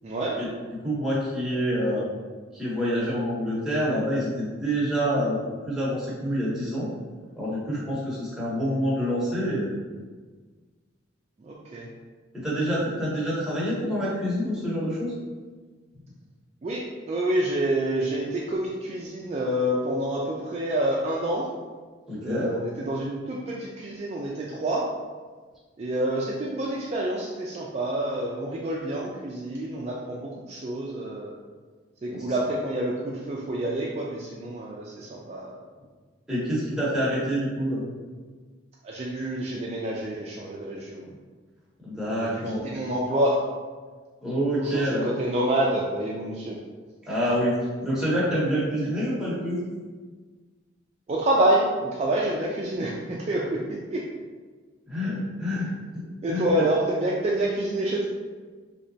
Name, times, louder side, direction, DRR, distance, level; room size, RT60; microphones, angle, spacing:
voice 1, 0.0-0.4 11.4-11.9 16.6-16.8 17.1-21.5 22.2-24.9 25.8-31.3 32.0-35.6 38.8-41.1 42.2-43.4 44.6-46.6 51.1-54.0 55.5-55.6 56.2-58.0, right 1 dB, 35° right, -4 dB, 0.3 m, -27 dB
voice 2, 0.8-2.0 2.5-6.9 7.4-9.7 12.4-15.1 22.1-22.5 32.1-32.2 36.3-37.8 41.8-42.6 44.2-45.0 47.1-47.5 47.8-49.6 54.9-55.7 55.9-56.0 56.3-56.6, equal, 5° right, -9 dB, 1.0 m, -27 dB
3.2 x 2.8 x 2.7 m, 1.4 s
head